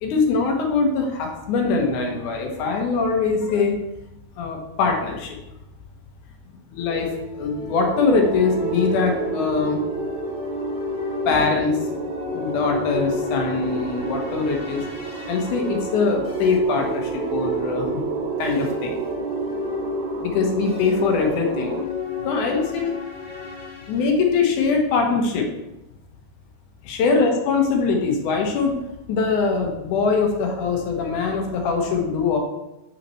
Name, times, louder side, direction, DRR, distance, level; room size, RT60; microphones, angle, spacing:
voice 1, 0.0-3.8 4.4-5.4 6.7-7.1 7.4-9.8 11.3-11.8 12.3-14.8 15.3-17.9 18.4-19.0 20.2-21.8 22.2-22.9 23.9-25.5 26.8-28.8 29.1-32.4, left 4 dB, 65° left, 2 dB, 2.2 m, -22 dB
sound 1, 6.8-24.0, left 2 dB, 15° left, 2.4 m, -32 dB
sound 2, 8.0-21.8, right 7 dB, 75° right, 2.2 m, -32 dB
8.7 x 5.8 x 3.1 m, 0.92 s
omnidirectional pair, 4.5 m